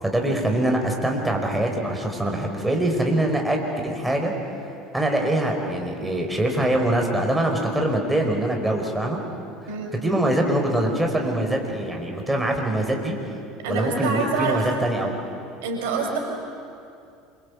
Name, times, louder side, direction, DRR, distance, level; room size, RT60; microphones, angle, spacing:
voice 1, 0.0-4.3 4.9-9.2 10.0-13.2 13.7-15.2, right 1 dB, 5° right, 1 dB, 5.0 m, -23 dB
voice 2, 13.6-14.6 15.6-16.2, right 4 dB, 70° right, 2 dB, 5.6 m, -26 dB
28.0 x 24.0 x 8.5 m, 2.5 s
hypercardioid pair, 70°, 0 cm